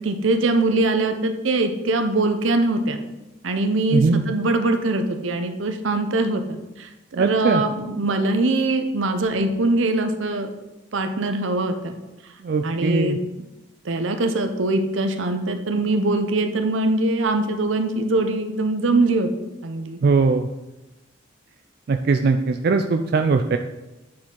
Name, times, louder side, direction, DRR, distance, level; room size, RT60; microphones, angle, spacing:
voice 1, 0.0-3.0 3.4-10.5 10.9-11.9 12.6-13.2 13.8-19.3 19.6-20.0, right 2 dB, 80° right, 6 dB, 0.7 m, -22 dB
voice 2, 3.9-4.2 7.2-7.6 12.4-13.2 20.0-20.5 21.9-23.6, right 4 dB, 55° right, 6 dB, 0.3 m, -20 dB
8.5 x 4.4 x 3.8 m, 1.0 s
head